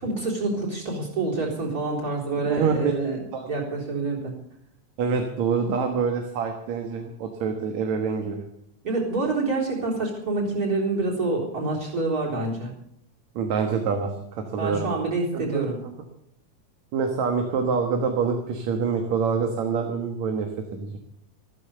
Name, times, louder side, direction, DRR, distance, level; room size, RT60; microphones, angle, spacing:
voice 1, 0.0-3.2 3.5-4.3 8.8-12.7 14.5-15.8, right 3 dB, 30° right, -2 dB, 4.2 m, -27 dB
voice 2, 2.4-2.9 3.3-3.5 5.0-8.5 13.4-14.9 15.3-15.9 16.9-21.0, right 5 dB, 70° right, 4 dB, 2.7 m, -26 dB
14.0 x 14.0 x 6.8 m, 0.69 s
omnidirectional pair, 3.3 m